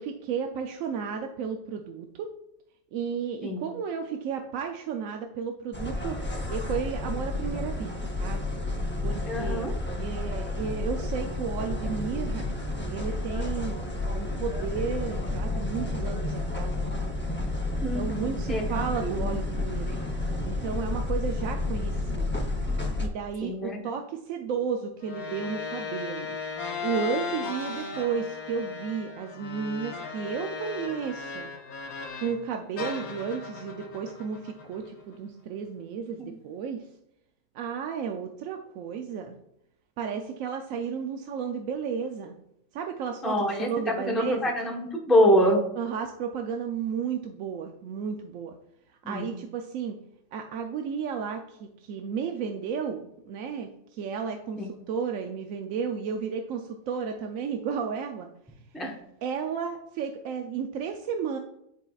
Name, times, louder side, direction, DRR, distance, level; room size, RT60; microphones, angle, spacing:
voice 1, 0.0-2.3 2.9-8.4 9.0-9.7 10.0-12.5 12.9-16.9 17.9-20.0 20.4-22.3 23.0-26.4 26.8-31.5 32.2-36.9 37.5-39.4 40.0-42.3 42.7-44.4 45.8-48.6 48.9-50.0 50.3-58.3 59.2-61.4, right 6 dB, 75° right, 4 dB, 0.9 m, -33 dB
sound 1, 5.7-23.1, left 2 dB, 15° left, 0.4 m, -31 dB
voice 2, 9.3-9.7 17.8-19.3 23.4-23.8 36.2-36.3 43.2-43.7 44.0-45.6 49.0-49.3 54.6-54.7 58.7-58.9, equal, ahead, -3 dB, 0.9 m, -26 dB
sound 2, 25.0-32.4 32.8-35.2, left 5 dB, 90° left, 1.2 m, -37 dB
9.6 x 4.6 x 2.4 m, 0.80 s
omnidirectional pair, 1.5 m